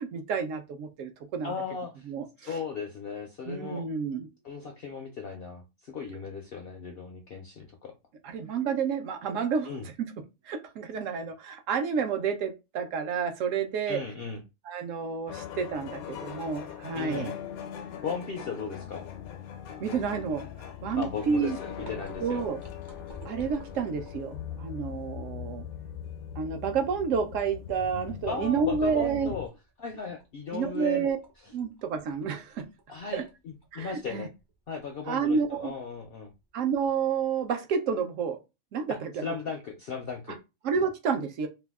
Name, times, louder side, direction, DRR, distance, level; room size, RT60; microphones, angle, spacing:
voice 1, 0.0-1.5 2.1-2.6 3.5-4.3 8.2-9.7 10.0-10.1 10.5-14.0 14.7-17.3 19.8-20.4 20.8-21.6 22.2-22.6 23.3-25.6 26.4-29.3 30.5-31.2 31.5-32.7 33.1-33.2 33.7-34.3 35.1-35.7 36.5-38.4 38.7-39.3 40.6-41.5, right 6 dB, 70° right, 0.9 m, -30 dB
voice 2, 1.4-2.1 2.4-3.9 4.4-7.9 9.6-9.9 13.9-14.4 16.9-17.4 18.0-19.1 20.9-22.4 28.3-29.5 29.8-31.1 32.9-34.3 34.7-36.3 38.9-40.4, left 5 dB, 70° left, 0.5 m, -37 dB
sound 1, 15.3-29.5, left 9 dB, 90° left, 1.0 m, -41 dB
sound 2, 21.6-24.5 25.0-25.1 25.4-26.6 27.0-27.3 27.7-28.2 28.7-37.4, equal, 30° right, 0.4 m, -50 dB
2.7 x 2.2 x 3.4 m
omnidirectional pair, 1.5 m